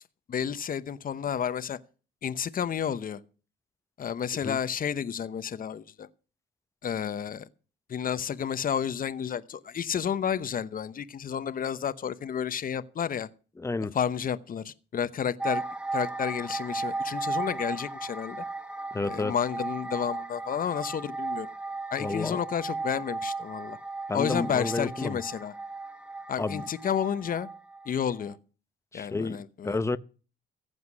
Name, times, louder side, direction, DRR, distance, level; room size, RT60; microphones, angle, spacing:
voice 1, 0.3-1.8 2.2-3.2 4.0-6.1 6.8-7.5 7.9-13.3 13.9-15.6 15.9-18.4 19.0-21.5 21.9-23.8 24.1-25.5 26.3-27.5 27.9-28.3 28.9-29.8, left 8 dB, 45° left, 0.9 m, -31 dB
voice 2, 13.6-14.0 18.9-19.3 22.0-22.4 24.1-25.2 26.4-26.6 28.9-30.0, left 3 dB, 15° left, 0.7 m, -31 dB
sound 1, 15.4-27.9 28.2-28.3, right 3 dB, 5° right, 1.2 m, -35 dB
15.0 x 8.0 x 6.2 m
cardioid pair, 90°, 20 cm